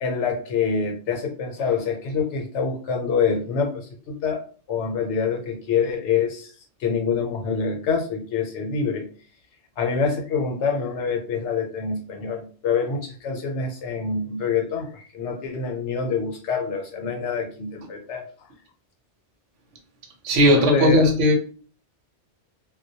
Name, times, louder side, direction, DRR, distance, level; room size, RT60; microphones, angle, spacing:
voice 1, 0.0-6.5 6.8-9.0 9.8-18.2 20.5-21.1, left 5 dB, 75° left, 0.9 m, -26 dB
voice 2, 20.2-21.4, equal, 85° right, 1.0 m, -17 dB
2.2 x 2.1 x 2.7 m
omnidirectional pair, 1.2 m